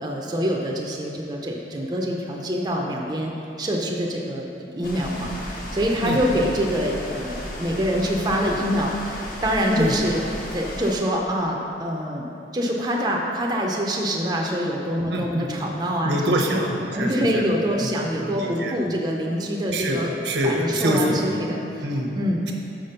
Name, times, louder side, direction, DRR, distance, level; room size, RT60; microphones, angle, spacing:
voice 1, 0.0-10.2 10.5-12.3 12.5-16.6 16.9-20.1 20.4-21.8 22.1-22.4, equal, 20° right, -1 dB, 0.5 m, -25 dB
sound 1, 4.8-10.9, equal, 50° left, 1.0 m, -34 dB
voice 2, 15.1-15.5 16.0-17.5 17.8-18.7 19.7-21.2 21.8-22.1, equal, 70° right, 1 dB, 0.8 m, -25 dB
6.3 x 5.1 x 5.5 m, 2.8 s
head